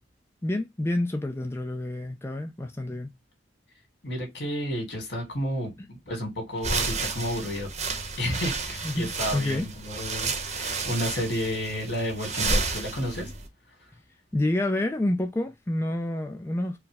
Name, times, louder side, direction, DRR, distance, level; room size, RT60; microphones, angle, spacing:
voice 1, 0.4-3.1 5.8-5.9 8.8-9.7 14.3-16.8, left 1 dB, 15° left, 0.4 m, -28 dB
voice 2, 4.0-7.7 8.2-13.3, equal, 65° left, 2.3 m, -31 dB
sound 1, 6.6-13.5, right 3 dB, 40° right, 0.8 m, -31 dB
4.6 x 2.1 x 3.4 m
head